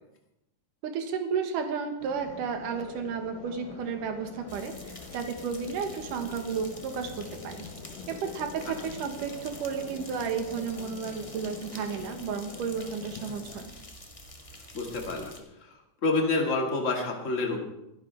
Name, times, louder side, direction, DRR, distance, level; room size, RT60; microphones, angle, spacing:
voice 1, 0.8-7.7 8.1-13.7, right 6 dB, 80° right, 5 dB, 3.0 m, -33 dB
sound 1, 2.0-13.6, left 5 dB, 75° left, 2.9 m, -45 dB
sound 2, 4.5-15.4, left 1 dB, 45° left, 0.4 m, -47 dB
voice 2, 14.7-15.3 15.6-15.7 16.0-17.6, left 3 dB, 25° left, 1 dB, 2.0 m, -28 dB
26.5 x 10.5 x 3.5 m, 0.89 s
omnidirectional pair, 3.7 m